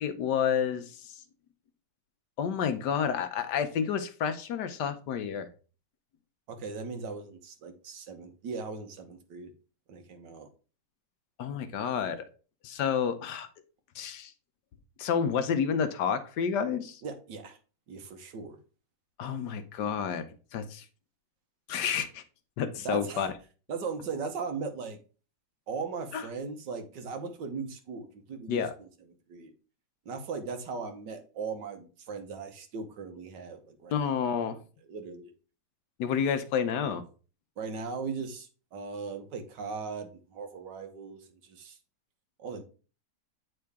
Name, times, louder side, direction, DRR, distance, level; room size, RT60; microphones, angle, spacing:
voice 1, 0.0-1.2 2.4-5.5 11.4-12.3 12.6-13.5 13.9-14.3 15.0-17.0 19.2-20.8 21.7-22.2 22.6-23.3 26.1-26.2 28.5-28.7 33.9-34.6 36.0-37.0, left 7 dB, 75° left, 9 dB, 1.3 m, -30 dB
voice 2, 6.5-9.5 9.9-10.5 17.0-17.6 17.9-18.6 22.8-23.3 23.7-25.0 25.7-28.9 29.3-29.5 30.0-34.2 34.8-35.3 37.6-41.8 42.4-42.6, right 5 dB, 80° right, 6 dB, 1.7 m, -38 dB
8.8 x 3.8 x 3.4 m, 0.36 s
omnidirectional pair, 1.9 m